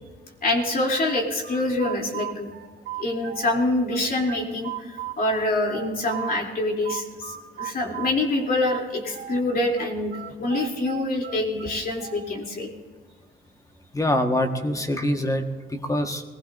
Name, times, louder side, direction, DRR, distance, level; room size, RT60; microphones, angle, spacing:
voice 1, 0.4-2.5 3.0-12.7, left 2 dB, 50° left, 0 dB, 3.1 m, -26 dB
sound 1, 1.1-3.6 3.9-6.4 6.8-9.4 9.7-12.4, right 12 dB, 65° right, 2.6 m, -36 dB
voice 2, 13.9-16.2, left 1 dB, 15° left, 5 dB, 1.5 m, -24 dB
21.5 x 16.5 x 2.6 m, 1.4 s
cardioid pair, 90°, 20 cm